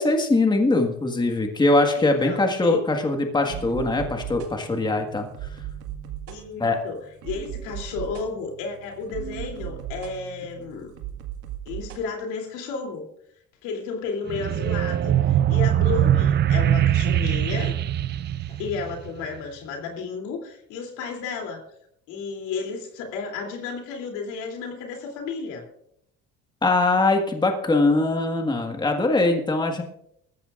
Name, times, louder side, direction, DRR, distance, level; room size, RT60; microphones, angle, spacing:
voice 1, 0.0-5.5 6.6-6.8 26.6-29.8, left 2 dB, 15° left, 4 dB, 1.6 m, -22 dB
voice 2, 1.9-2.8 6.3-10.9 11.6-13.0 13.6-17.7 18.5-21.6 22.1-25.6, left 4 dB, 80° left, 3 dB, 3.1 m, -33 dB
sound 1, 3.5-12.0, right 11 dB, 80° right, 1.8 m, -38 dB
sound 2, 14.3-19.3, right 11 dB, 35° right, 0.4 m, -22 dB
19.5 x 14.5 x 2.5 m, 0.72 s
cardioid pair, 110°, 30 cm